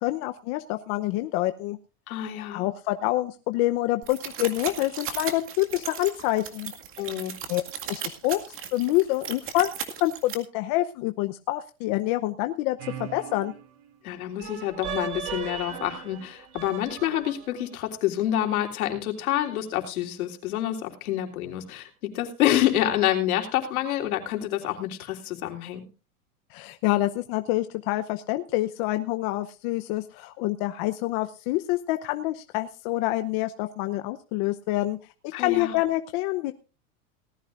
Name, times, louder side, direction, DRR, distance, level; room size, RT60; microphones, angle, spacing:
voice 1, 0.0-1.8 2.5-6.7 7.5-7.6 7.9-8.4 8.7-9.7 10.0-13.5 26.5-35.0 35.2-36.5, left 17 dB, 45° left, 9 dB, 0.9 m, -27 dB
voice 2, 2.1-2.6 7.0-7.3 14.0-25.8 35.3-35.8, left 12 dB, 75° left, 4 dB, 3.5 m, -27 dB
sound 1, 4.0-10.3, right 8 dB, 30° right, 2.0 m, -36 dB
sound 2, 12.8-13.9 14.4-17.7, right 8 dB, 55° right, 2.8 m, -37 dB
18.5 x 13.5 x 2.5 m, 0.32 s
supercardioid pair, 145°, 43 cm